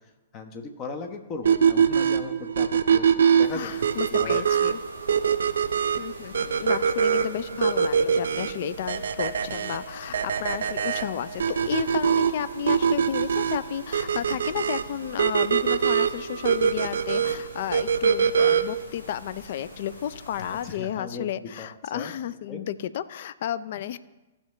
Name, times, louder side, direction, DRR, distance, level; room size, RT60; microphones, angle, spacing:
voice 1, 0.3-3.7 4.1-4.5 20.4-22.1 22.5-22.6, left 4 dB, 30° left, 5 dB, 1.2 m, -38 dB
sound 1, 1.5-18.9, right 7 dB, 70° right, 0.5 m, -23 dB
sound 2, 3.4-20.7, left 1 dB, 80° left, 3.1 m, -46 dB
voice 2, 3.5-4.8 6.0-24.0, left 10 dB, 55° left, 14 dB, 0.4 m, -32 dB
15.5 x 5.8 x 3.3 m, 1.1 s
figure-of-eight pair, 115°, 0 cm